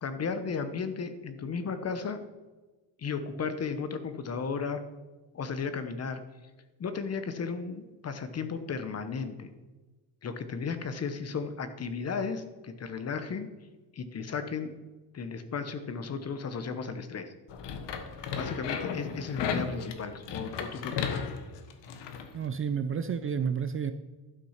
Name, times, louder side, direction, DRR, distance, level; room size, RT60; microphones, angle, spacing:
voice 1, 0.0-2.2 3.0-4.8 5.3-6.2 6.8-9.5 10.2-13.5 13.9-14.7 15.1-17.3 18.3-21.1, left 5 dB, 35° left, 10 dB, 1.0 m, -34 dB
sound 1, 17.5-22.3, left 6 dB, 80° left, 1.3 m, -35 dB
voice 2, 22.3-23.9, right 7 dB, 35° right, 10 dB, 0.4 m, -30 dB
12.0 x 6.1 x 5.7 m, 1.2 s
cardioid pair, 145°, 42 cm